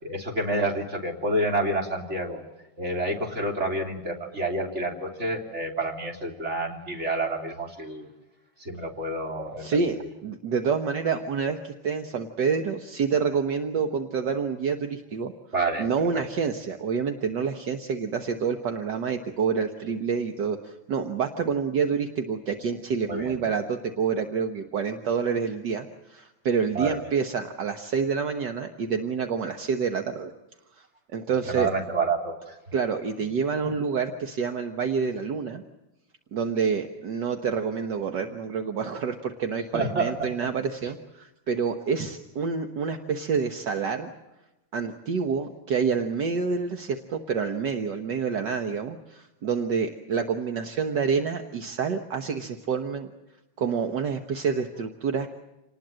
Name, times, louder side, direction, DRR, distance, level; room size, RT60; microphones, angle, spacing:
voice 1, 0.0-2.4 2.8-8.1 8.6-9.6 10.0-10.1 15.5-16.2 23.1-23.4 26.7-27.0 31.5-32.6 33.6-33.7 39.7-40.1, right 2 dB, 35° right, 1 dB, 3.5 m, -29 dB
voice 2, 9.6-15.3 15.8-30.3 30.8-30.9 31.1-31.7 32.7-35.6 36.3-44.1 44.7-53.1 53.6-55.3, right 6 dB, 70° right, 5 dB, 1.8 m, -28 dB
28.0 x 19.5 x 7.6 m, 1.0 s
omnidirectional pair, 2.0 m